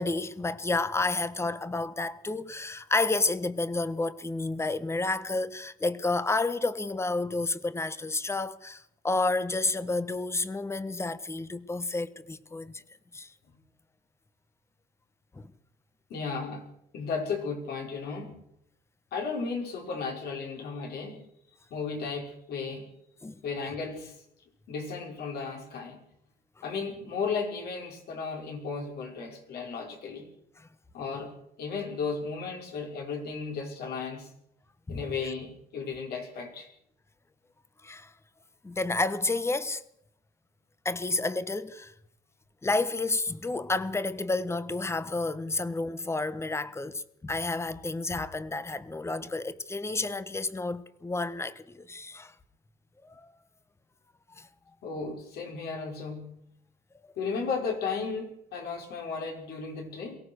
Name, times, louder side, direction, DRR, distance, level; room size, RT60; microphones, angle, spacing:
voice 1, 0.0-12.8 13.1-13.3 15.3-15.5 23.2-23.3 30.6-30.7 34.9-35.0 37.8-38.1 38.6-39.8 40.8-41.9 42.6-52.3 53.0-53.3 54.4-54.5, left 3 dB, 15° left, 1.2 m, -30 dB
voice 2, 16.1-16.7 16.9-18.3 19.1-21.2 21.7-22.9 23.4-24.2 24.7-26.0 26.6-30.3 30.9-34.3 34.9-36.7 54.8-56.4 57.2-60.2, left 5 dB, 70° left, 6.0 m, -34 dB
23.0 x 17.5 x 6.5 m
cardioid pair, 110°, 17 cm